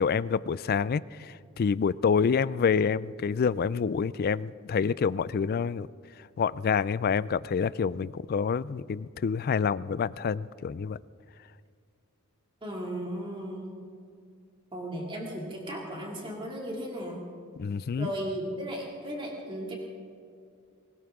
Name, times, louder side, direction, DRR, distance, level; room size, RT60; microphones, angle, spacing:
voice 1, 0.0-5.9 6.4-11.0 17.6-18.1, left 6 dB, 45° left, 18 dB, 0.3 m, -27 dB
voice 2, 12.6-13.6 14.7-17.2 18.0-19.7, equal, 25° right, -1 dB, 2.4 m, -35 dB
21.0 x 19.0 x 3.6 m, 2.3 s
head